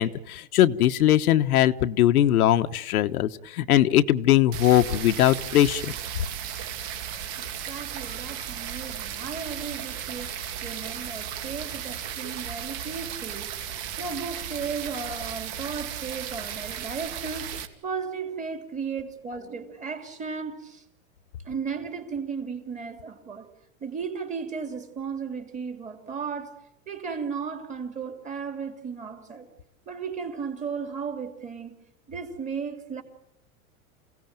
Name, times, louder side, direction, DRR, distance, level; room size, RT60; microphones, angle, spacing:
voice 1, 0.0-5.9, left 12 dB, 85° left, 1.3 m, -21 dB
sound 1, 4.5-17.7, right 9 dB, 45° right, 2.7 m, -35 dB
voice 2, 7.4-10.4 10.6-17.5 17.8-20.8 21.4-23.5 23.8-26.6 26.9-29.5 29.9-31.8 32.1-33.0, right 5 dB, 15° right, 3.2 m, -35 dB
28.0 x 17.5 x 9.1 m
supercardioid pair, 155°, 43 cm